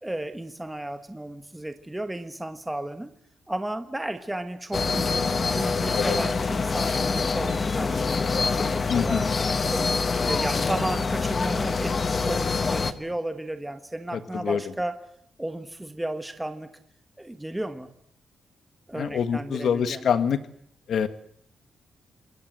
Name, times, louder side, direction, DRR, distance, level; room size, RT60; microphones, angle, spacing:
voice 1, 0.0-3.1 3.5-8.2 8.5-9.3 9.6-11.9 12.2-15.0 15.4-16.7 17.2-17.9 18.9-20.0, right 1 dB, 5° right, 8 dB, 1.3 m, -33 dB
sound 1, 4.7-12.9, left 4 dB, 30° left, 1.3 m, -25 dB
voice 2, 8.9-9.3 14.1-14.6 18.9-20.4 20.9-21.1, left 7 dB, 60° left, 11 dB, 1.6 m, -25 dB
27.5 x 21.5 x 7.9 m, 0.67 s
wide cardioid pair, 180°, 0 cm